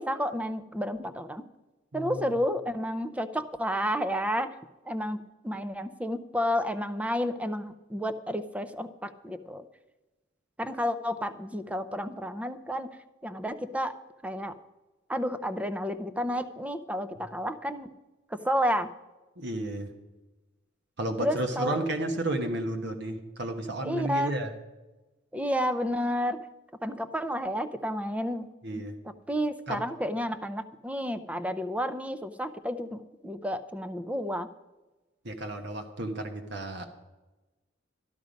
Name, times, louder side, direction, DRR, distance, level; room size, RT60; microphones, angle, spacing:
voice 1, 0.0-1.4 1.9-4.5 4.9-5.2 5.4-9.6 10.6-12.9 13.2-13.9 14.2-14.5 15.1-17.9 18.3-18.9 21.2-21.9 23.8-24.3 25.3-26.4 26.8-28.5 29.3-34.5, equal, 5° right, 12 dB, 0.6 m, -31 dB
voice 2, 1.9-2.3 19.4-19.9 21.0-24.5 28.6-28.9 29.7-29.8 35.2-36.8, right 1 dB, 60° right, 5 dB, 1.2 m, -32 dB
13.0 x 12.0 x 5.2 m, 1.1 s
head